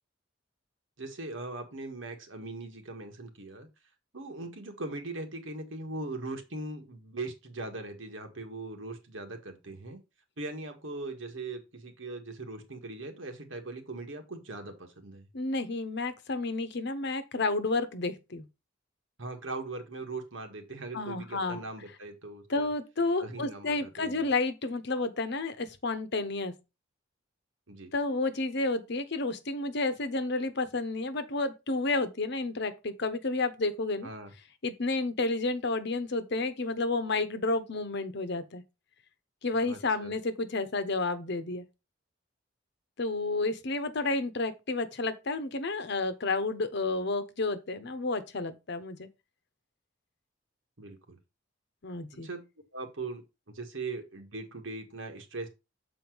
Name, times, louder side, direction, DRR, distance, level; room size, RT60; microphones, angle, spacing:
voice 1, 1.0-3.7 4.1-10.0 10.4-15.3 19.2-22.7 23.2-24.3 27.7-27.9 34.0-34.3 39.5-40.1 50.8-51.2 52.2-52.4 52.7-55.5, right 2 dB, 85° right, 1.6 m, -40 dB
voice 2, 15.3-18.4 20.9-21.6 22.5-26.5 27.9-34.1 34.6-38.6 39.4-41.6 43.0-49.1 51.8-52.3, left 3 dB, 65° left, 1.0 m, -31 dB
7.2 x 4.5 x 4.5 m
head